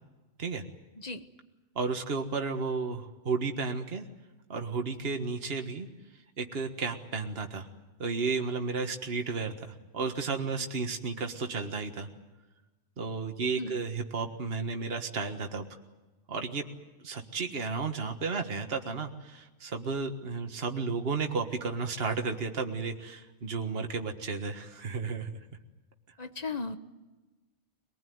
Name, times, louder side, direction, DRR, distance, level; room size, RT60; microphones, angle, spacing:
voice 1, 1.7-4.1 4.5-5.9 6.4-7.7 8.0-12.1 13.0-15.7 16.3-16.6 17.0-25.4, right 4 dB, 55° right, 5 dB, 1.8 m, -33 dB
voice 2, 26.2-26.8, left 3 dB, 35° left, 9 dB, 1.2 m, -36 dB
24.5 x 19.5 x 9.4 m, 1.2 s
omnidirectional pair, 1.3 m